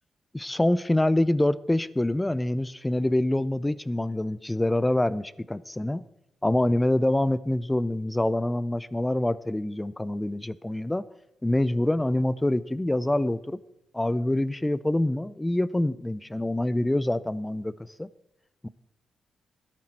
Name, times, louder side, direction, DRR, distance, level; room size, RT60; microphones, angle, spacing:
voice 1, 0.3-6.0 6.4-11.0 11.4-13.6 13.9-18.1 18.6-18.7, left 1 dB, 15° left, 18 dB, 0.4 m, -26 dB
13.5 x 10.5 x 4.4 m, 0.86 s
cardioid pair, 75°, 0 cm